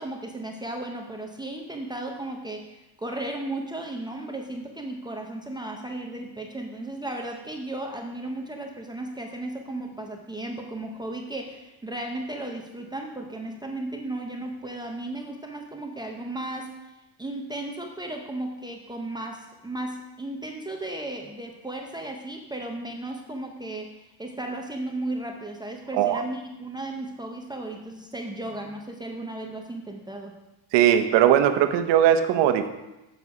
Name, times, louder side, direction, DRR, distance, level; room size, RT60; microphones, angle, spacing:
voice 1, 0.0-16.7 17.2-30.3, right 2 dB, 10° right, 2 dB, 0.6 m, -35 dB
voice 2, 30.7-32.7, right 10 dB, 60° right, 9 dB, 1.0 m, -19 dB
9.4 x 7.1 x 4.8 m, 0.98 s
cardioid pair, 145°, 50 cm